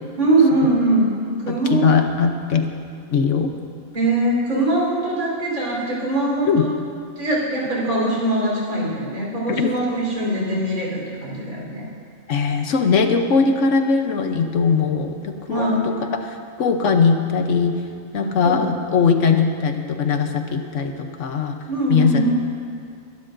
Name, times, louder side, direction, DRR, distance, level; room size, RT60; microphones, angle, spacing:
voice 1, 0.2-1.1 1.4-2.0 3.9-6.7 7.2-11.9 15.5-15.9 18.2-18.6 21.7-22.3, right 2 dB, 85° right, -5 dB, 4.5 m, -22 dB
voice 2, 1.5-2.7 3.1-3.5 6.4-6.7 9.5-9.7 12.3-17.8 18.1-21.6 21.9-22.3, left 5 dB, 65° left, 6 dB, 1.1 m, -20 dB
22.5 x 12.0 x 2.6 m, 2.2 s
omnidirectional pair, 1.4 m